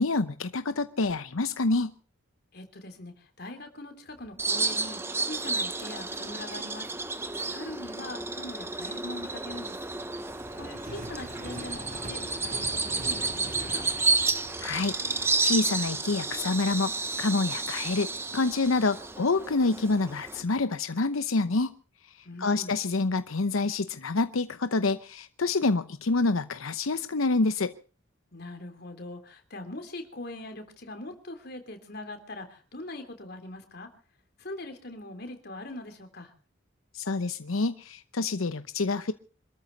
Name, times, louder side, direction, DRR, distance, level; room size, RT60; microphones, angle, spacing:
voice 1, 0.0-1.9 14.6-16.9 17.2-21.7 22.4-27.7 36.9-39.1, left 3 dB, 90° left, 11 dB, 0.8 m, -27 dB
voice 2, 2.5-6.9 7.5-9.8 10.5-13.8 22.2-22.7 28.3-33.9 34.4-36.3, left 2 dB, 50° left, 6 dB, 3.4 m, -42 dB
sound 1, 4.1-20.6, right 1 dB, 40° right, 4.2 m, -47 dB
Bird vocalization bird call bird song, 4.4-20.4, right 3 dB, 10° right, 0.9 m, -31 dB
26.0 x 13.5 x 4.1 m, 0.39 s
head